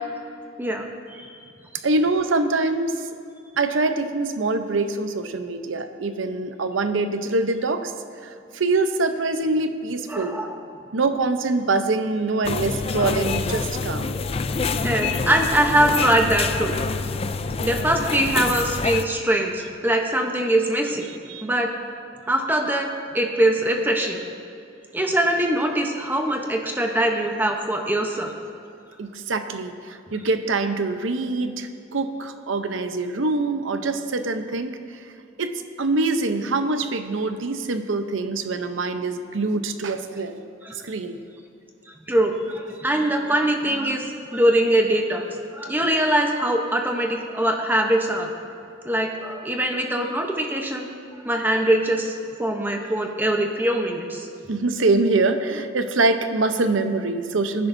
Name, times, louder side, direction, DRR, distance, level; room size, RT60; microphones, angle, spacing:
voice 1, 0.6-1.3 10.1-10.6 13.0-13.1 14.8-16.7 17.6-21.1 21.4-21.7 22.3-24.2 24.9-28.3 40.6-40.7 42.1-45.2 45.5-48.3 48.8-50.9 51.2-54.3, right 1 dB, 10° right, 2 dB, 0.8 m, -22 dB
voice 2, 1.8-3.1 3.6-7.9 8.2-10.4 10.9-14.1 21.3-21.4 29.0-35.1 35.4-40.4 40.7-41.2 54.5-57.7, right 3 dB, 85° right, 8 dB, 0.8 m, -24 dB
sound 1, 12.4-19.0, left 4 dB, 30° left, 0.4 m, -26 dB
22.0 x 10.0 x 2.7 m, 2.5 s
head